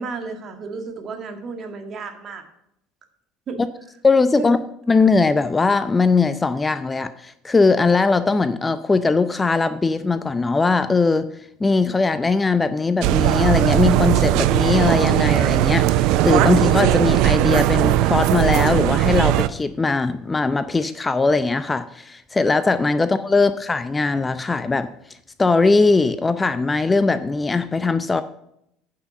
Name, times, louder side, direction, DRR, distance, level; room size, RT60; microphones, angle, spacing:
voice 1, 0.0-2.4 3.5-3.6 4.4-4.5, right 4 dB, 40° right, 5 dB, 1.8 m, -32 dB
voice 2, 4.0-4.6 4.9-11.3 11.6-24.9 25.4-28.2, left 4 dB, 20° left, 13 dB, 0.5 m, -20 dB
sound 1, 13.0-19.5, right 14 dB, 60° right, 0.4 m, -18 dB
9.5 x 5.8 x 6.6 m, 0.77 s
figure-of-eight pair, 65°, 0 cm